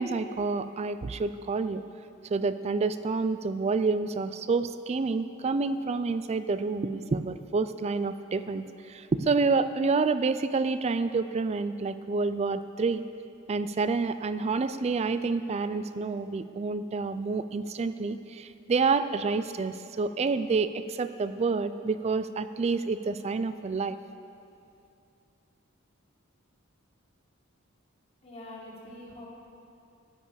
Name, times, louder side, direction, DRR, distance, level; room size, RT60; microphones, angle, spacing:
voice 1, 0.0-1.8 2.3-13.0 13.5-24.0, right 4 dB, 30° right, 12 dB, 0.4 m, -28 dB
voice 2, 28.2-29.3, left 1 dB, 30° left, -5 dB, 2.0 m, -44 dB
12.0 x 9.7 x 4.8 m, 2.6 s
head